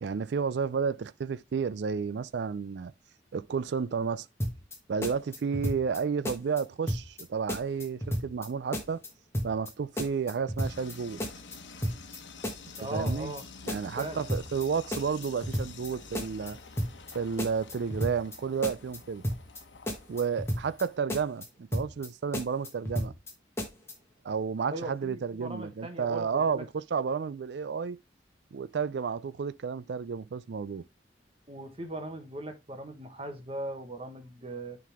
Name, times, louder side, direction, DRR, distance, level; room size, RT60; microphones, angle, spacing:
voice 1, 0.0-2.9 3.3-4.3 4.9-9.0 9.4-11.2 12.8-13.3 13.7-16.6 17.1-19.2 20.1-21.5 21.7-23.1 24.2-28.0 28.5-30.8, right 6 dB, 70° right, 0.4 m, -31 dB
sound 1, 4.4-4.8 5.0-6.0 6.2-6.6 6.9-7.2 7.5-8.5 8.7-9.1 9.3-9.7 10.0-10.9 11.2-11.6 11.8-12.2 12.4-13.4 13.7-14.0 14.3-14.6 14.9-15.9 16.1-16.5 16.8-17.1 17.4-18.4 18.6-19.0 19.2-19.6 19.9-20.8 21.1-21.5 21.7-22.1 22.3-23.3 23.6-23.9, equal, 15° left, 1.5 m, -32 dB
sound 2, 10.6-21.0, left 4 dB, 85° left, 1.1 m, -49 dB
voice 2, 12.8-13.4 14.0-14.2 24.7-26.6 31.5-34.8, right 1 dB, 30° right, 1.3 m, -39 dB
10.0 x 3.9 x 3.5 m
head